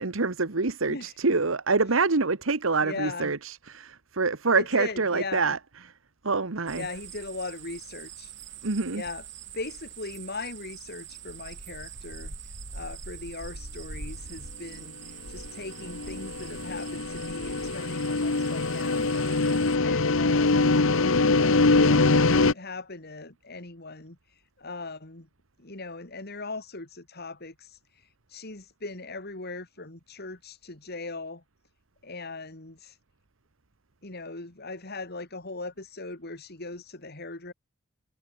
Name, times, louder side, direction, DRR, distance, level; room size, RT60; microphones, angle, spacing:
voice 1, 0.0-5.6 6.2-6.8 8.6-9.0, right 4 dB, 75° right, 1.3 m, -26 dB
voice 2, 0.9-1.2 1.9-2.0 2.8-3.3 4.5-5.6 6.7-8.4 8.9-9.3 9.5-20.6 20.9-25.3 25.6-31.4 32.0-33.0 34.0-37.5, left 3 dB, 50° left, 3.1 m, -39 dB
sound 1, 6.7-19.8, right 5 dB, 60° right, 6.4 m, -43 dB
sound 2, 15.8-22.5, left 3 dB, 75° left, 1.1 m, -23 dB
head